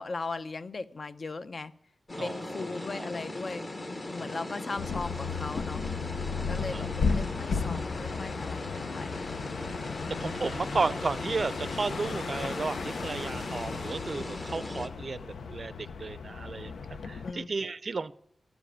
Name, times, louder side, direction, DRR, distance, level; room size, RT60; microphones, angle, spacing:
voice 1, 0.0-1.7 2.2-5.8 6.5-9.2 10.0-10.5 17.2-17.5, left 3 dB, 40° left, 0.6 m, -38 dB
sound 1, 2.1-14.9, left 2 dB, 25° left, 1.0 m, -39 dB
voice 2, 2.2-2.6 3.0-3.1 4.2-4.4 6.7-6.9 10.2-16.7 17.0-18.1, right 4 dB, 40° right, 0.5 m, -33 dB
sound 2, 4.8-17.3, left 5 dB, 85° left, 0.7 m, -35 dB
13.5 x 7.2 x 9.9 m
wide cardioid pair, 155°, 0 cm